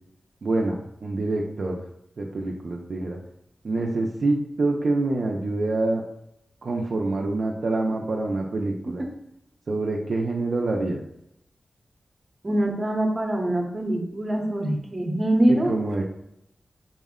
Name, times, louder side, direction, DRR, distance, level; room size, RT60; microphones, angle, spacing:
voice 1, 0.4-1.8 2.2-3.2 3.6-6.0 6.6-9.0 9.7-11.0 15.5-16.0, right 2 dB, 60° right, -1 dB, 0.4 m, -26 dB
voice 2, 12.4-15.7, right 1 dB, 30° right, 1 dB, 0.8 m, -23 dB
4.2 x 2.1 x 3.6 m, 0.80 s
wide cardioid pair, 130°, 0 cm